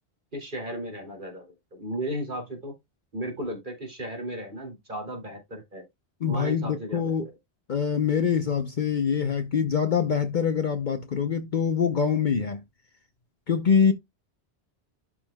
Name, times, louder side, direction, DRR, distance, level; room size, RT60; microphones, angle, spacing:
voice 1, 0.3-2.7 3.1-5.8 6.3-7.2, right 1 dB, 45° right, 2.7 m, -35 dB
voice 2, 6.2-7.2 7.7-12.6 13.5-13.9, left 6 dB, 50° left, 0.8 m, -24 dB
11.5 x 5.5 x 2.2 m
omnidirectional pair, 1.1 m